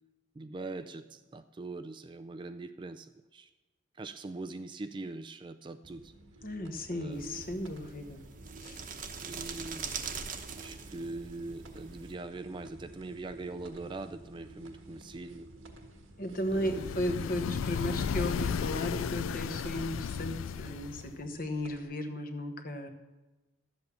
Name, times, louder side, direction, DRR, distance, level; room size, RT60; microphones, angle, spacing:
voice 1, 0.4-3.5 4.0-6.1 6.9-7.5 9.2-9.9 10.6-15.5 16.5-16.9, right 3 dB, 25° right, 10 dB, 0.3 m, -42 dB
sound 1, 5.8-21.8, right 2 dB, 90° right, 1.5 m, -53 dB
voice 2, 6.4-8.2 8.6-8.8 16.2-22.9, left 1 dB, 45° left, 7 dB, 1.1 m, -35 dB
sound 2, 7.1-12.1, right 6 dB, 40° right, 0.9 m, -42 dB
sound 3, 16.5-21.2, left 6 dB, 85° left, 0.3 m, -34 dB
12.0 x 8.0 x 6.9 m, 1.1 s
head